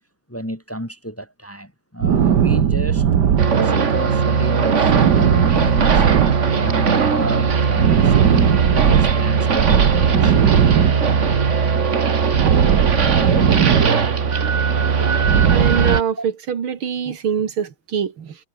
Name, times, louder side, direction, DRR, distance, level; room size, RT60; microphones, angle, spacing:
voice 1, 0.3-3.1 3.3-6.1 6.6-10.9 16.2-16.3, equal, 5° left, 2.0 m, -32 dB
sound 1, 2.0-4.1 4.4-7.0 7.2-9.2 9.5-11.5 11.7-14.3 14.6-16.0, right 8 dB, 55° right, 1.9 m, -19 dB
sound 2, 3.4-16.0, right 5 dB, 40° right, 1.7 m, -19 dB
voice 2, 15.5-18.4, right 7 dB, 90° right, 2.8 m, -24 dB
omnidirectional pair, 2.2 m